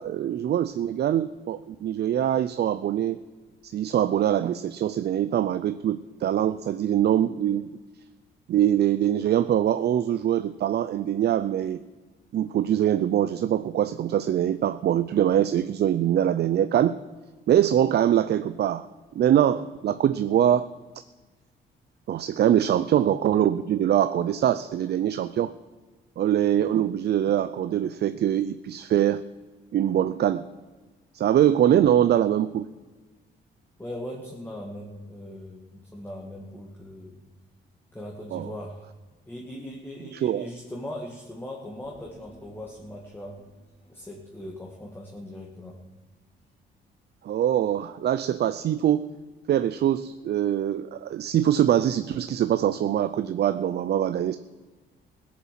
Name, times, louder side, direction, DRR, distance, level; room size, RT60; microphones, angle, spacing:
voice 1, 0.0-3.2 3.6-7.7 8.5-11.8 12.3-17.0 17.5-18.9 19.2-20.7 22.1-25.5 26.2-29.2 29.7-30.5 31.1-32.7 38.3-38.5 40.1-40.5 47.2-49.1 49.5-54.4, right 10 dB, 55° right, 13 dB, 0.5 m, -23 dB
voice 2, 33.8-37.2 37.9-38.9 39.3-43.4 43.9-45.8, left 1 dB, 10° left, -1 dB, 2.0 m, -39 dB
Human voice, 41.8-46.4 46.7-46.8, equal, 35° left, 5.1 m, -57 dB
16.5 x 7.3 x 7.5 m, 1.3 s
cardioid pair, 90°, 20 cm